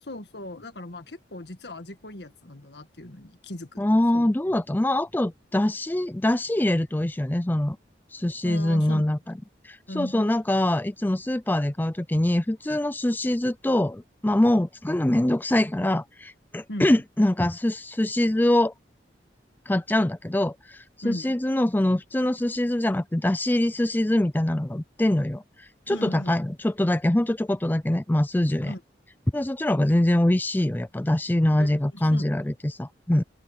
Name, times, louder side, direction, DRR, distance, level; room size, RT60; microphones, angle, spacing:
voice 1, 0.0-3.8 4.1-4.3 8.4-9.1 9.9-10.5 16.7-16.9 21.0-21.3 25.9-26.4 28.6-28.8 31.6-32.3, left 1 dB, 75° left, 1.8 m, -37 dB
voice 2, 3.8-7.8 8.1-9.2 9.6-18.7 19.7-28.7 29.3-33.2, left 1 dB, 10° left, 0.5 m, -24 dB
open air
head